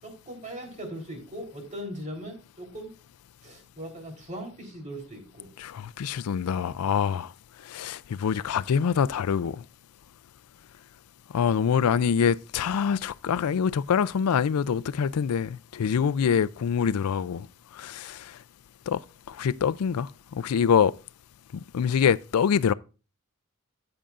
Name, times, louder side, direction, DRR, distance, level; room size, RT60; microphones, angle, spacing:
voice 1, 0.0-2.9 3.4-5.5, equal, 35° right, 3.7 m, -39 dB
voice 2, 5.6-7.3 7.7-9.6 11.3-17.5 17.8-18.3 18.9-19.0 19.3-20.9 21.5-22.7, left 7 dB, 85° left, 0.4 m, -25 dB
14.0 x 8.9 x 2.5 m
head